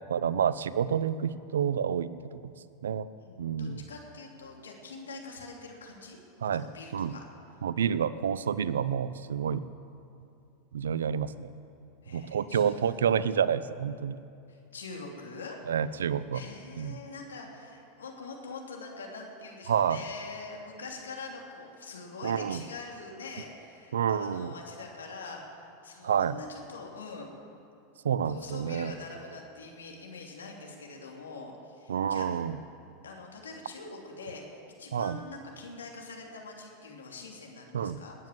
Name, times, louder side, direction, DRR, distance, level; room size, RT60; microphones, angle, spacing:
voice 1, 0.1-2.1 2.8-3.1 3.4-3.8 6.4-6.7 6.9-7.1 7.6-9.7 10.7-11.5 12.1-14.2 15.7-16.4 16.8-17.0 19.7-20.0 22.2-22.6 23.9-24.5 26.0-26.4 28.0-28.9 31.9-32.6 34.9-35.2 37.7-38.0, right 8 dB, 75° right, 17 dB, 0.5 m, -28 dB
voice 2, 3.2-7.2 12.0-13.0 14.5-15.6 16.3-27.3 28.2-32.4 33.0-38.1, left 3 dB, 80° left, 0 dB, 3.0 m, -44 dB
19.5 x 9.5 x 7.7 m, 2.6 s
hypercardioid pair, 90°, 0 cm